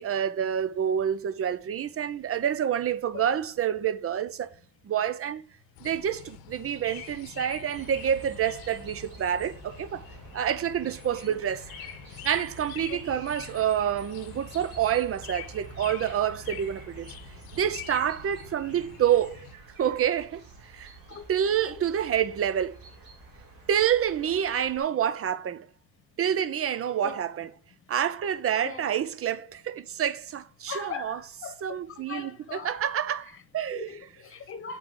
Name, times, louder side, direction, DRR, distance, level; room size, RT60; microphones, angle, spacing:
voice 1, 0.0-4.5 4.8-5.4 5.8-10.1 10.3-11.7 12.2-17.1 17.5-19.4 19.8-20.9 21.3-22.8 23.7-25.7 26.2-27.5 27.9-31.2 31.6-33.9, right 9 dB, 40° right, 0.6 m, -28 dB
sound 1, 5.8-19.6, left 11 dB, 85° left, 0.8 m, -46 dB
sound 2, 7.7-24.8, right 4 dB, 70° right, 2.8 m, -48 dB
voice 2, 12.9-13.2 21.1-21.2 21.6-21.9 24.3-24.4 27.0-27.2 28.6-28.9 30.7-32.9 33.2-33.4 33.7-34.8, left 6 dB, 35° left, 1.1 m, -40 dB
7.5 x 4.4 x 3.8 m
cardioid pair, 100°, 35 cm